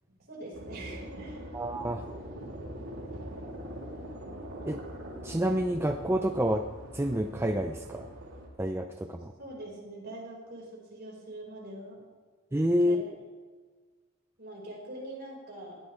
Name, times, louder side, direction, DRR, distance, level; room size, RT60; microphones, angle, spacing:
voice 1, 0.1-1.4 9.4-12.1 12.9-13.2 14.4-15.8, right 1 dB, 50° right, -3 dB, 5.4 m, -43 dB
sound 1, 0.5-8.5, equal, 70° right, 3.3 m, -42 dB
voice 2, 1.5-2.0 4.7-4.8 5.2-6.6 6.9-8.1 8.6-9.3 12.5-13.0, equal, 10° right, 5 dB, 0.5 m, -28 dB
19.0 x 14.0 x 3.5 m, 1.5 s
head